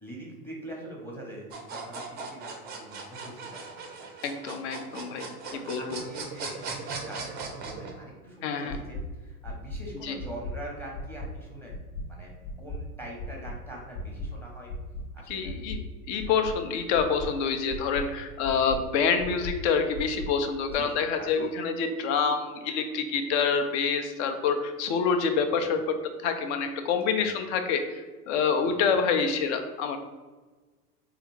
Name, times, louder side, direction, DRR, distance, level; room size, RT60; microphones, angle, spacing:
voice 1, 0.0-4.1 5.4-12.3 12.6-14.7 15.1-15.5 20.7-21.3 27.2-27.4 28.7-28.8, right 1 dB, 5° left, -2 dB, 0.7 m, -43 dB
sound 1, 1.5-7.9, right 4 dB, 20° right, 0.4 m, -38 dB
voice 2, 4.2-5.3 5.7-6.0 8.4-8.8 10.0-10.2 15.3-25.8 26.2-30.0, left 6 dB, 50° left, 6 dB, 0.6 m, -27 dB
sound 2, 8.7-9.0 9.4-9.8 10.2-10.5 10.9-11.3 11.7-12.0 12.4-12.8 13.2-13.5 13.9-14.3 14.7-15.0 15.4-15.8 16.2-16.5 16.9-17.3 17.7-18.0 18.4-18.8 19.2-19.5 19.9-20.3 20.7-20.8, left 2 dB, 75° left, 0.9 m, -36 dB
3.3 x 2.4 x 3.1 m, 1.3 s
hypercardioid pair, 110°, 45 cm